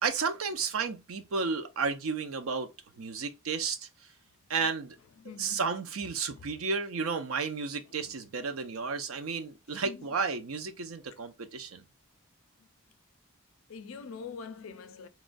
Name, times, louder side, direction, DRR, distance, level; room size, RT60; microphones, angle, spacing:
voice 1, 0.0-2.7 3.0-3.9 4.5-5.0 5.4-11.8, right 5 dB, 85° right, 0.5 m, -32 dB
voice 2, 5.2-5.6 6.3-6.4 8.0-8.1 9.1-9.2 9.7-10.1 12.6-12.7 13.7-15.1, left 5 dB, 75° left, 0.4 m, -45 dB
3.0 x 2.2 x 2.4 m
head